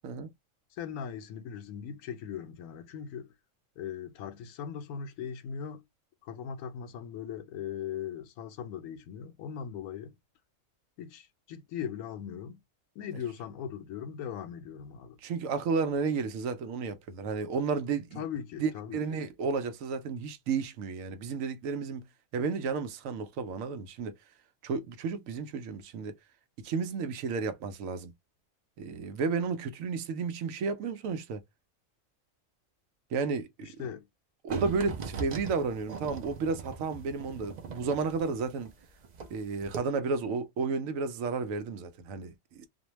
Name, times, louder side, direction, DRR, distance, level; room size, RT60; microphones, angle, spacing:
voice 1, 0.7-3.3 3.8-5.8 6.2-10.1 11.0-12.6 13.0-15.2 18.2-19.2 33.6-34.1, left 8 dB, 90° left, 1.0 m, -39 dB
voice 2, 15.2-18.2 18.6-22.1 22.3-24.1 24.6-26.1 26.6-28.1 28.8-31.4 33.1-33.8 34.4-38.7 39.3-42.7, right 5 dB, 80° right, 1.0 m, -32 dB
sound 1, 34.5-39.4 39.6-39.8, right 5 dB, 55° right, 0.4 m, -40 dB
2.5 x 2.1 x 2.9 m
omnidirectional pair, 1.4 m